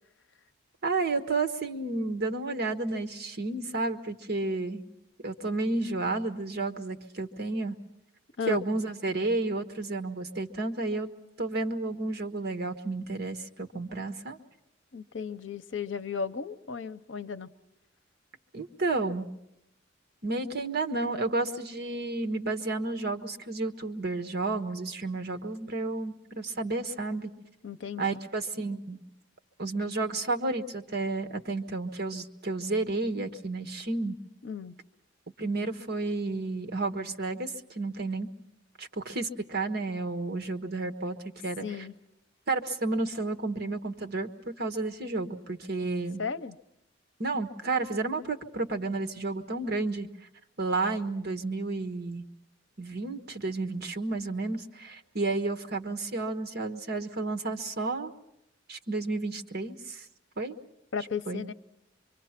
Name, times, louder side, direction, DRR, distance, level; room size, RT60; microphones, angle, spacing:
voice 1, 0.8-4.8 5.2-7.8 8.5-11.1 11.4-14.4 18.5-19.3 20.2-27.3 28.0-29.0 29.6-34.2 35.4-38.3 38.8-41.2 41.4-41.9 42.5-44.3 44.6-46.2 47.2-50.1 50.6-52.2 52.8-58.1 58.7-60.0 60.4-60.6 61.3-61.4, right 3 dB, 55° right, 6 dB, 1.3 m, -31 dB
voice 2, 14.9-17.5 27.6-28.2 34.4-34.8 41.6-41.9 46.2-46.6 60.9-61.5, left 6 dB, 70° left, 12 dB, 0.8 m, -35 dB
25.0 x 24.5 x 5.9 m, 0.82 s
head